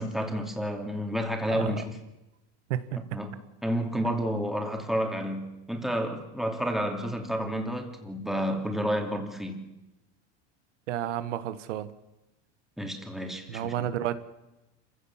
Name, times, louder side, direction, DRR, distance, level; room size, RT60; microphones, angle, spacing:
voice 1, 0.0-2.0 3.1-3.3 3.6-9.6 12.8-13.9, equal, ahead, 3.0 m, -30 dB
voice 2, 10.9-11.9 13.5-14.2, right 11 dB, 90° right, 1.5 m, -31 dB
26.5 x 16.0 x 7.4 m
supercardioid pair, 130°, 35 cm